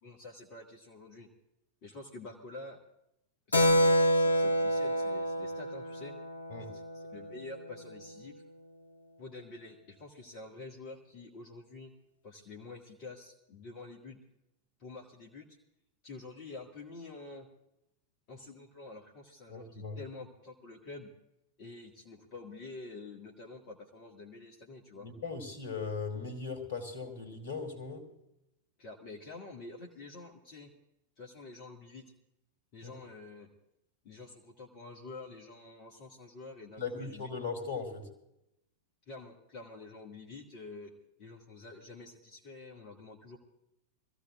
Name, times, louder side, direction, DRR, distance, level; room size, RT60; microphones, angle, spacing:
voice 1, 0.0-1.3 1.8-2.8 3.5-6.1 6.6-8.4 9.2-11.9 12.2-14.2 14.8-15.6 16.0-17.5 18.3-21.1 21.6-25.1 28.8-30.7 31.2-32.1 32.7-33.5 34.0-37.5 39.1-40.9 41.2-43.4, left 3 dB, 45° left, -1 dB, 1.9 m, -48 dB
Keyboard (musical), 3.5-7.6, equal, 80° left, 0.8 m, -28 dB
voice 2, 19.5-20.0 25.0-28.0 32.8-32.9 36.8-38.1, left 4 dB, 60° left, 7 dB, 2.7 m, -38 dB
25.0 x 15.5 x 2.5 m, 0.86 s
figure-of-eight pair, 90°, 0 cm